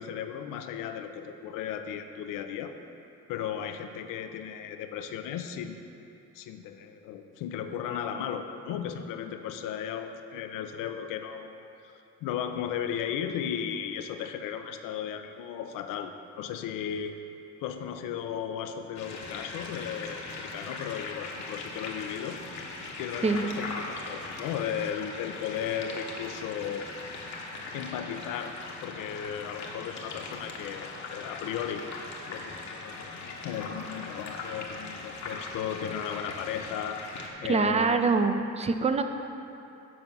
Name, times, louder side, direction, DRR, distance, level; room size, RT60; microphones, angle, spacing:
voice 1, 0.0-2.7 3.3-5.8 6.3-11.9 12.2-17.2 17.6-22.4 23.0-26.9 27.7-28.5 28.8-31.8 32.3-37.0 37.4-38.1, left 8 dB, 80° left, 7 dB, 0.6 m, -35 dB
sound 1, 19.0-37.3, left 3 dB, 60° left, 1.1 m, -40 dB
voice 2, 37.5-39.0, right 4 dB, 20° right, 7 dB, 0.5 m, -24 dB
7.7 x 4.5 x 5.4 m, 2.9 s
supercardioid pair, 80°, 32 cm